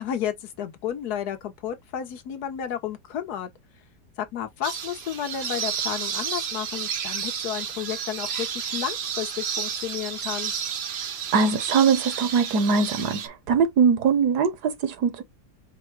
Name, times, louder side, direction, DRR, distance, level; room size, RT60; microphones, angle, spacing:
voice 1, 0.0-3.5 4.2-10.5, left 10 dB, 70° left, 1.3 m, -32 dB
sound 1, 4.6-13.3, right 7 dB, 55° right, 0.7 m, -31 dB
voice 2, 11.3-15.2, right 5 dB, 75° right, 1.4 m, -22 dB
4.7 x 2.2 x 4.5 m
omnidirectional pair, 1.8 m